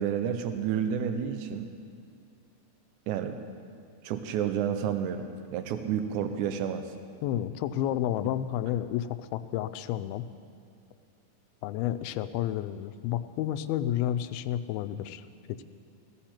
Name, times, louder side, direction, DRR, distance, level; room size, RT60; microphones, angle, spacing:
voice 1, 0.0-1.7 3.1-3.4 4.0-6.9, right 8 dB, 90° right, 8 dB, 1.7 m, -30 dB
voice 2, 7.2-10.2 11.6-15.6, left 12 dB, 90° left, 11 dB, 2.4 m, -31 dB
17.5 x 14.5 x 4.3 m, 2.3 s
omnidirectional pair, 4.3 m